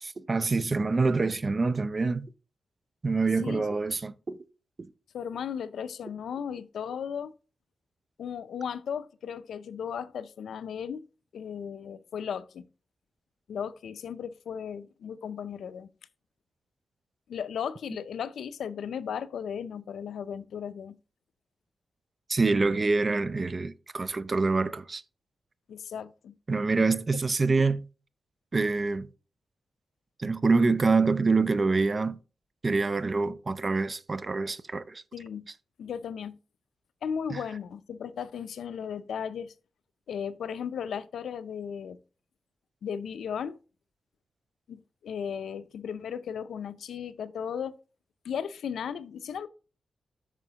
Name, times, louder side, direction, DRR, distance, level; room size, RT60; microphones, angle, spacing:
voice 1, 0.0-2.3 3.0-4.4 22.3-25.0 26.5-27.9 28.5-29.1 30.2-32.2 32.6-35.0 37.3-37.4, right 3 dB, 30° right, 0.4 m, -26 dB
voice 2, 3.4-3.7 5.1-7.3 8.2-11.0 11.3-12.7 13.5-15.9 17.3-21.0 25.7-26.3 35.1-35.5 35.8-36.3 37.0-39.5 40.1-42.0 42.8-43.6 44.7-47.8 48.2-49.5, left 7 dB, 85° left, 0.5 m, -36 dB
9.0 x 6.2 x 2.9 m
wide cardioid pair, 155°, 0 cm